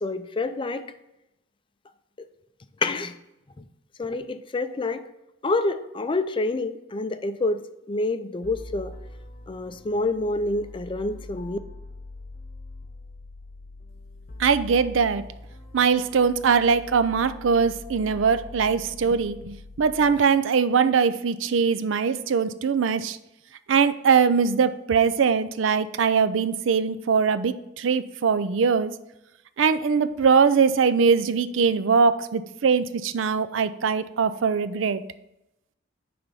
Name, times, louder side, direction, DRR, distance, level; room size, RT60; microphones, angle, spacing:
voice 1, 0.0-0.9 2.8-3.1 4.0-5.1 5.4-8.9 9.5-11.6, left 2 dB, 25° left, 10 dB, 0.4 m, -27 dB
sound 1, 8.4-20.2, left 2 dB, 45° left, 0.8 m, -43 dB
voice 2, 14.4-15.2 15.7-23.2 23.7-28.9 29.6-35.0, right 6 dB, 80° right, 13 dB, 0.4 m, -22 dB
9.9 x 3.4 x 5.4 m, 0.89 s
head